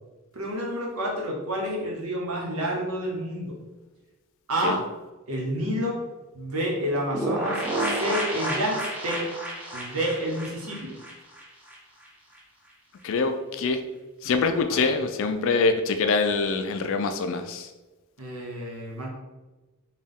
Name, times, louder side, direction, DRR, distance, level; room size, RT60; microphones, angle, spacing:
voice 1, 0.3-3.6 4.5-4.8 5.3-6.0 6.3-9.2 9.7-10.9 14.6-14.8 18.2-19.1, right 1 dB, 75° right, -2 dB, 1.0 m, -29 dB
sound 1, 7.1-11.8 12.0-12.1 12.4-12.5, right 1 dB, 5° right, 0.6 m, -30 dB
voice 2, 13.0-13.8 14.2-17.6, left 4 dB, 65° left, 8 dB, 0.4 m, -24 dB
4.0 x 2.3 x 3.5 m, 1.2 s
head